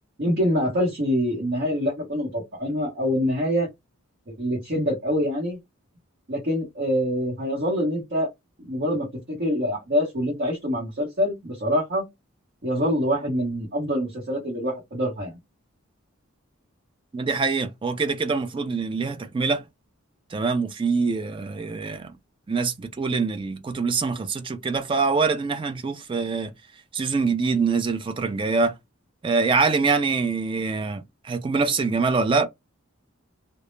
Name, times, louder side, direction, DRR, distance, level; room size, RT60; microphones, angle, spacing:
voice 1, 0.2-3.7 4.3-5.6 6.3-8.3 8.6-12.0 12.6-15.3, equal, 50° right, 0.9 m, -25 dB
voice 2, 17.1-19.6 20.3-22.1 22.5-26.5 26.9-28.7 29.2-32.5, right 4 dB, 25° right, 0.3 m, -24 dB
2.1 x 2.0 x 3.0 m
head